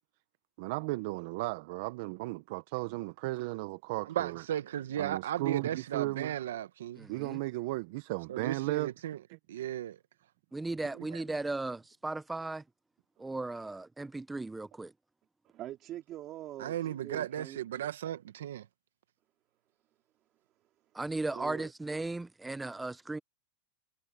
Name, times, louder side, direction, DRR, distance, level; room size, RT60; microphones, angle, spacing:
voice 1, 0.6-4.4 5.0-6.3 7.1-8.9 11.0-11.2, right 21 dB, 60° right, 0.8 m, -35 dB
voice 2, 4.1-7.1 8.3-9.2 9.5-10.0 16.6-18.7, right 11 dB, 85° right, 0.9 m, -35 dB
voice 3, 7.0-7.4 10.5-12.6 13.2-14.9 20.9-23.2, right 2 dB, 10° right, 0.6 m, -36 dB
voice 4, 15.4-17.6 21.3-21.7, right 13 dB, 40° right, 2.5 m, -44 dB
supercardioid pair, 125°, 0 cm